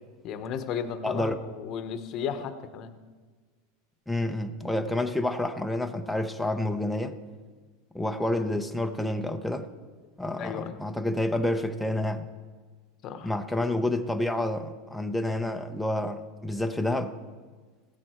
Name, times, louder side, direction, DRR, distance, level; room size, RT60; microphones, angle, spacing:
voice 1, 0.2-2.9 10.4-10.7 13.0-13.3, left 7 dB, 40° left, 9 dB, 0.9 m, -34 dB
voice 2, 1.0-1.4 4.1-7.2 7.9-9.7 10.2-12.3 13.2-17.2, left 1 dB, ahead, 6 dB, 0.6 m, -29 dB
15.5 x 7.6 x 4.4 m, 1.4 s
supercardioid pair, 140°, 0 cm